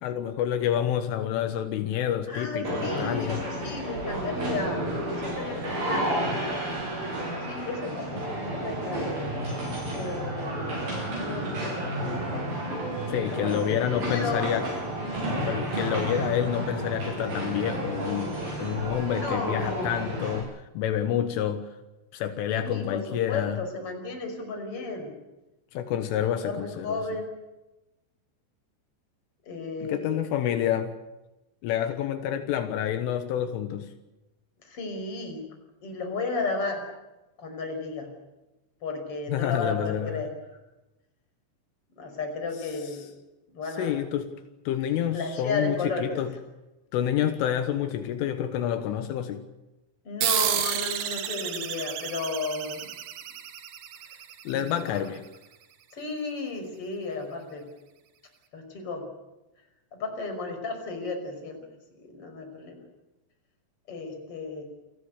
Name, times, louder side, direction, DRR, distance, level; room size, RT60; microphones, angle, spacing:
voice 1, 0.0-3.4 13.1-14.7 15.4-21.7 22.1-23.6 25.7-27.0 29.8-31.0 31.6-33.9 39.3-40.2 43.8-44.3 44.7-46.3 46.9-49.4 54.5-55.3, left 10 dB, 80° left, 8 dB, 3.8 m, -28 dB
voice 2, 2.3-4.9 5.1-6.1 7.4-9.1 9.9-10.8 11.1-12.5 13.4-14.5 19.1-20.2 22.5-25.2 26.4-27.3 29.5-30.2 34.6-35.4 35.8-36.8 37.4-38.1 38.8-40.3 42.0-43.0 43.5-43.9 45.1-46.1 50.0-52.9 54.5-55.0 55.9-57.7 58.5-59.1 59.9-61.6 62.0-62.8 63.9-64.6, left 3 dB, 30° left, 4 dB, 6.1 m, -34 dB
sound 1, 2.6-20.4, right 1 dB, 50° right, 8.8 m, -31 dB
sound 2, 50.2-55.2, right 10 dB, 70° right, 4.1 m, -31 dB
29.0 x 18.5 x 8.2 m, 1.0 s
omnidirectional pair, 5.7 m